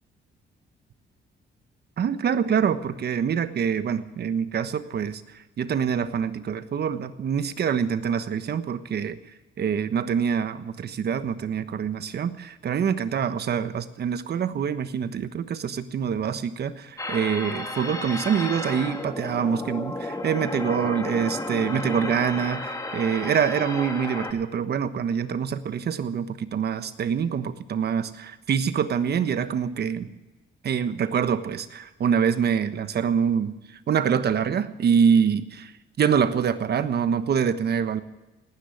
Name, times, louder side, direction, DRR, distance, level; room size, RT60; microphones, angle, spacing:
voice 1, 2.0-9.2 9.6-30.1 30.6-33.5 33.9-35.7 36.0-38.0, right 7 dB, 55° right, 11 dB, 1.3 m, -25 dB
sound 1, 17.0-24.3, left 2 dB, 15° left, 2.4 m, -32 dB
18.0 x 10.5 x 7.2 m, 1.1 s
cardioid pair, 90°, 20 cm